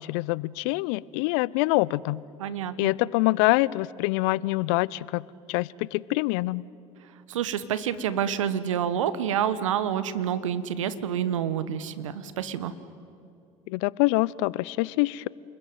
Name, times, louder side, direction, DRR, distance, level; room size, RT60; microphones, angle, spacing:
voice 1, 0.0-2.2 2.8-5.2 5.5-6.6 13.7-15.3, left 21 dB, 65° left, 23 dB, 0.6 m, -25 dB
voice 2, 2.4-2.9 7.3-12.7, right 9 dB, 80° right, 14 dB, 1.3 m, -28 dB
29.5 x 21.5 x 9.3 m, 2.5 s
hypercardioid pair, 70°, 16 cm